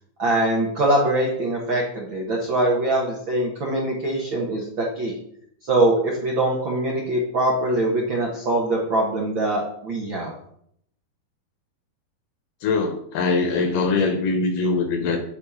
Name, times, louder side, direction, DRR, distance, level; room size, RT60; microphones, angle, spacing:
voice 1, 0.2-5.1 5.6-10.3, right 1 dB, 70° right, -2 dB, 1.1 m, -23 dB
voice 2, 12.6-15.2, left 4 dB, 70° left, 6 dB, 2.2 m, -22 dB
8.7 x 5.3 x 5.6 m, 0.70 s
omnidirectional pair, 4.6 m